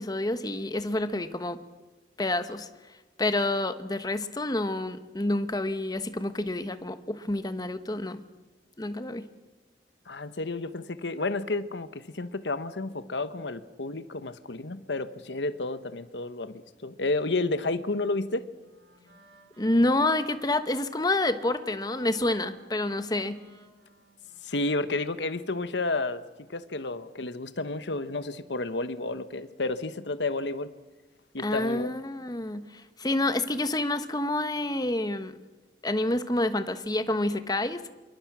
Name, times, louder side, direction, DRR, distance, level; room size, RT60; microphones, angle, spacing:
voice 1, 0.0-1.6 2.2-2.7 3.2-8.2 8.8-9.2 19.6-23.4 31.4-35.3 35.8-37.8, left 2 dB, 20° left, 11 dB, 1.1 m, -28 dB
voice 2, 10.1-18.5 24.4-26.2 26.5-30.7 31.3-31.9, left 2 dB, 80° left, 12 dB, 1.2 m, -31 dB
Wind instrument woodwind instrument, 18.5-25.2, right 1 dB, 85° right, 5.0 m, -55 dB
27.0 x 23.5 x 6.2 m, 1.2 s
head